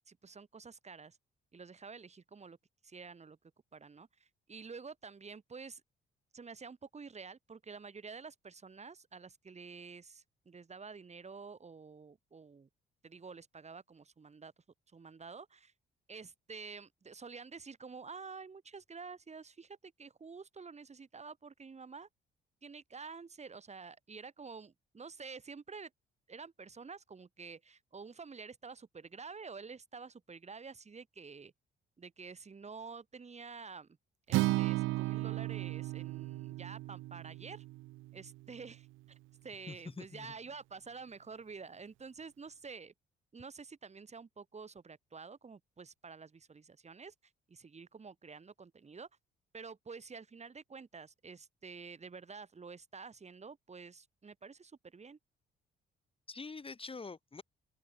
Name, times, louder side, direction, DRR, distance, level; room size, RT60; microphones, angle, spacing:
voice 1, 0.1-1.2 1.5-2.6 2.8-3.4 3.7-5.8 6.3-12.7 13.0-14.5 14.9-15.7 16.1-22.1 22.6-25.9 26.3-31.5 32.0-33.9 34.3-37.6 38.1-39.2 39.4-42.9 43.3-47.1 47.5-49.1 49.5-55.2, right 5 dB, 35° right, 5.8 m, -49 dB
Acoustic guitar, 34.3-38.5, right 18 dB, 85° right, 0.4 m, -35 dB
voice 2, 39.7-40.3 56.3-57.4, left 4 dB, 25° left, 3.0 m, -45 dB
cardioid pair, 90°, 20 cm